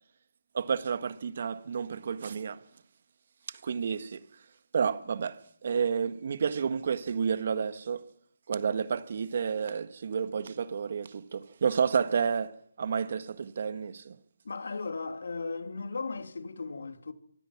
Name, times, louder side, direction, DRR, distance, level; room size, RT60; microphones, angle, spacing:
voice 1, 0.5-2.6 3.5-4.2 4.7-8.0 8.5-14.2, right 6 dB, 50° right, 1.4 m, -30 dB
voice 2, 14.4-17.1, left 4 dB, 70° left, 2.9 m, -36 dB
26.5 x 24.5 x 6.0 m
figure-of-eight pair, 160°, 0 cm